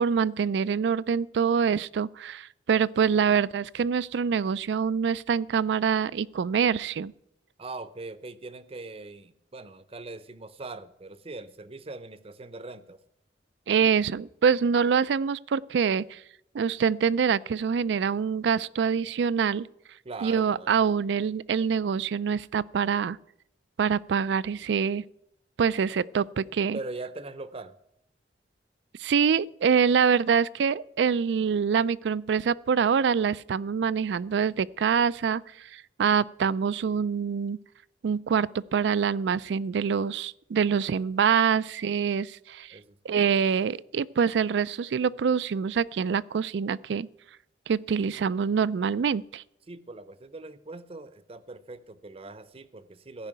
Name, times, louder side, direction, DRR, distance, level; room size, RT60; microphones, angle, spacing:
voice 1, 0.0-7.1 13.7-16.2 16.5-19.7 20.2-23.2 23.8-25.0 25.6-26.8 29.0-37.6 38.0-42.7 43.0-47.1 47.7-49.4, right 6 dB, 75° right, 0.4 m, -25 dB
voice 2, 7.6-13.0 20.0-20.8 26.7-27.7 42.7-43.3 49.7-53.3, right 3 dB, 35° right, 0.6 m, -41 dB
14.5 x 5.5 x 9.0 m
head